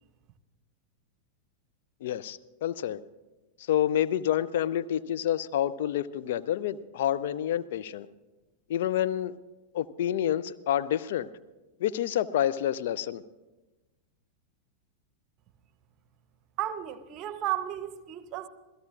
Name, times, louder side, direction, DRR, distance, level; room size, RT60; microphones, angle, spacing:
voice 1, 2.0-3.0 3.7-8.1 8.7-9.3 9.7-11.3 11.8-13.2, left 11 dB, 55° left, 0.5 m, -28 dB
voice 2, 16.6-18.5, right 12 dB, 35° right, 0.9 m, -33 dB
27.0 x 17.0 x 2.5 m
figure-of-eight pair, 90°, 0 cm